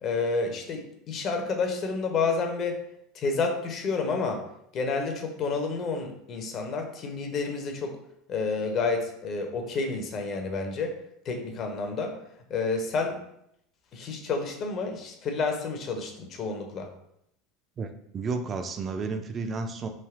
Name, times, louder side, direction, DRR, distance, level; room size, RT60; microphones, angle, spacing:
voice 1, 0.0-2.8 3.1-4.4 4.7-8.0 8.3-10.9 11.3-12.2 12.5-13.2 13.9-16.9, left 4 dB, 45° left, 4 dB, 0.5 m, -29 dB
voice 2, 17.8-19.9, right 4 dB, 35° right, 6 dB, 0.3 m, -32 dB
3.3 x 2.6 x 2.4 m, 0.76 s
hypercardioid pair, 85°, 0 cm